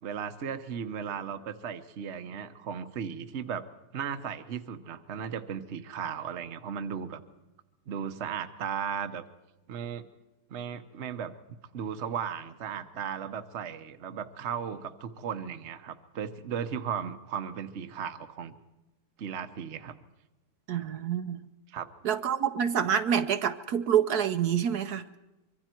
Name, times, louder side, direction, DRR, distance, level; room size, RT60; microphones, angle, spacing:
voice 1, 0.0-3.6 3.9-7.2 7.9-9.2 9.7-10.0 10.5-18.5 19.2-20.0 21.7-21.9, right 7 dB, 45° right, 9 dB, 1.2 m, -36 dB
voice 2, 20.7-21.4 22.0-25.1, right 8 dB, 70° right, 8 dB, 1.4 m, -27 dB
25.0 x 23.5 x 4.5 m, 0.99 s
omnidirectional pair, 1.7 m